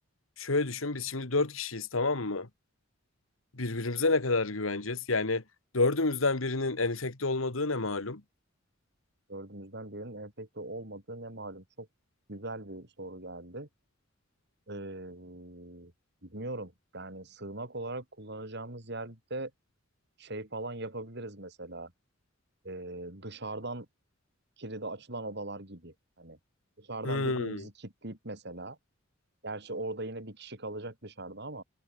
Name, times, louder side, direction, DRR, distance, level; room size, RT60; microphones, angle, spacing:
voice 1, 0.4-2.5 3.5-5.4 5.7-8.2 27.0-27.7, left 3 dB, 90° left, 1.9 m, -29 dB
voice 2, 9.3-11.9 12.3-13.7 14.7-15.9 16.2-19.5 20.2-21.9 22.6-23.9 24.6-26.4 26.8-28.8 29.4-31.6, right 2 dB, 55° right, 4.3 m, -40 dB
head